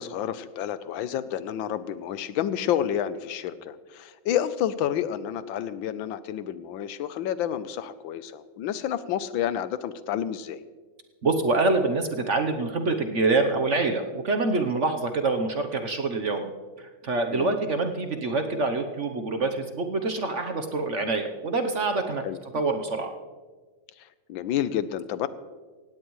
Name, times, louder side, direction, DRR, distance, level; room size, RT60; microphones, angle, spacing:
voice 1, 0.0-10.6 17.3-17.6 22.2-22.4 24.0-25.3, left 10 dB, 90° left, 14 dB, 1.5 m, -30 dB
voice 2, 11.2-16.5 16.8-22.2 22.5-23.1, right 3 dB, 50° right, 5 dB, 1.0 m, -26 dB
18.0 x 16.5 x 3.1 m, 1.4 s
omnidirectional pair, 2.1 m